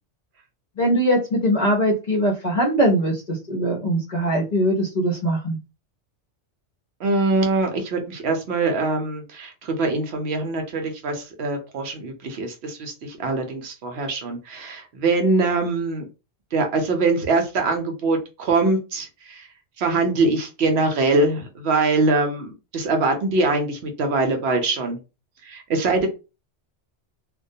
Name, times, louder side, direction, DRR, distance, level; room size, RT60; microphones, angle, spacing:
voice 1, 0.8-5.6, equal, 50° left, -1 dB, 0.6 m, -21 dB
voice 2, 7.0-16.1 16.5-19.5 19.8-25.0 25.4-26.1, right 3 dB, 65° right, 4 dB, 0.8 m, -23 dB
2.2 x 2.1 x 2.6 m, 0.29 s
omnidirectional pair, 1.2 m